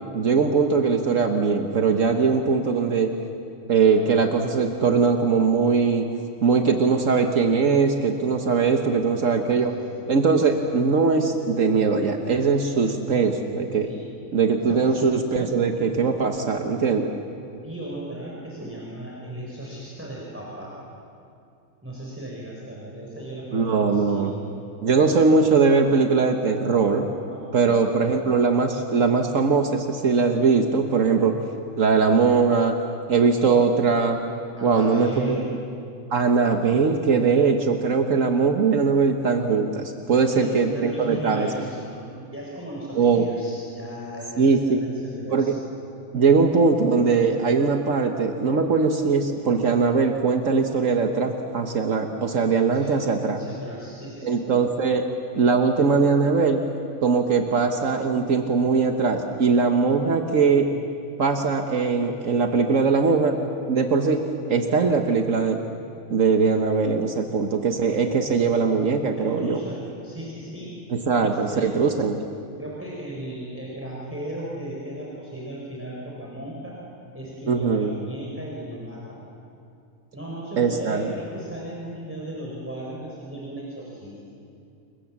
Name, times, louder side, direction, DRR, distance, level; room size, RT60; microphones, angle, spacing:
voice 1, 0.1-3.1 3.7-6.1 6.4-9.7 10.1-13.9 14.3-17.1 23.5-24.3 24.8-27.1 27.5-31.4 31.8-32.8 33.1-34.2 34.6-35.4 36.1-41.5 43.0-43.3 44.4-44.8 45.3-45.6 46.1-53.4 54.2-55.0 55.4-56.6 57.0-60.7 61.2-63.4 63.7-65.6 66.1-69.6 71.1-72.2 77.5-77.9 80.6-81.1, right 5 dB, 70° right, 4 dB, 1.6 m, -21 dB
voice 2, 8.8-10.1 13.8-14.1 14.7-15.0 17.5-20.8 21.8-24.4 27.3-27.8 34.5-35.5 40.1-45.5 52.7-53.0 53.3-54.4 69.2-70.7 71.2-71.7 72.6-76.8 77.1-79.2 80.1-84.2, right 1 dB, 10° right, -4 dB, 4.7 m, -36 dB
29.5 x 23.0 x 7.4 m, 2.5 s
omnidirectional pair, 1.4 m